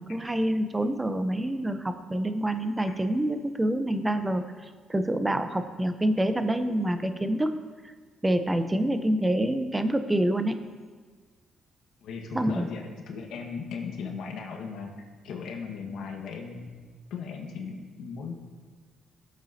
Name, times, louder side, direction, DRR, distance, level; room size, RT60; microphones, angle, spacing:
voice 1, 0.0-4.5 4.9-7.6 8.2-10.6 12.3-12.7, right 1 dB, 15° right, 9 dB, 0.7 m, -26 dB
voice 2, 12.0-14.9 15.2-16.8 17.1-18.3, left 5 dB, 80° left, 2 dB, 1.5 m, -37 dB
16.5 x 7.4 x 2.8 m, 1.5 s
cardioid pair, 90°, 0 cm